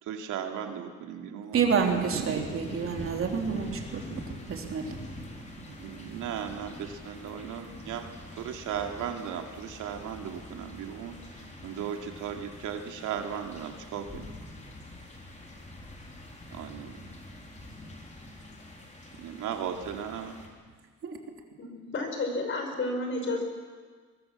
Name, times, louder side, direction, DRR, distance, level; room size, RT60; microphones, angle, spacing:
voice 1, 0.0-1.6 2.1-2.5 5.7-14.3 16.5-17.0 19.2-20.4, right 8 dB, 75° right, 4 dB, 2.6 m, -37 dB
voice 2, 1.5-4.0 4.5-5.0 21.0-21.2, right 6 dB, 45° right, 2 dB, 3.3 m, -28 dB
sound 1, 1.8-20.5, left 1 dB, 25° left, 4.2 m, -45 dB
voice 3, 21.6-23.4, left 2 dB, 40° left, 4 dB, 5.2 m, -31 dB
23.5 x 21.5 x 7.4 m, 1.5 s
cardioid pair, 145°, 30 cm